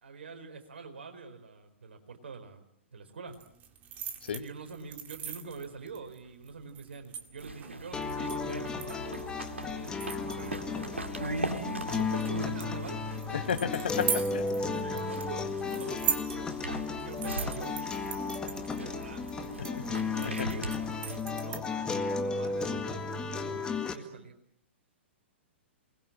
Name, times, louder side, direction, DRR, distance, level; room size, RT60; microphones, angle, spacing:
voice 1, 0.0-2.6 2.9-3.4 4.3-9.2 9.6-11.3 11.8-13.3 13.8-14.3 14.7-16.5 16.8-17.7 18.8-20.7 21.2-24.3, right 4 dB, 60° right, 6 dB, 4.6 m, -46 dB
sound 1, 3.3-21.9, right 8 dB, 25° right, 2.0 m, -41 dB
sound 2, 7.4-21.2, right 2 dB, 75° right, 2.2 m, -40 dB
sound 3, 7.9-23.9, left 4 dB, 10° left, 1.9 m, -34 dB
voice 2, 13.3-14.4 19.6-20.5, left 7 dB, 60° left, 10 dB, 1.7 m, -33 dB
28.0 x 21.0 x 7.5 m, 0.69 s
figure-of-eight pair, 110°, 7 cm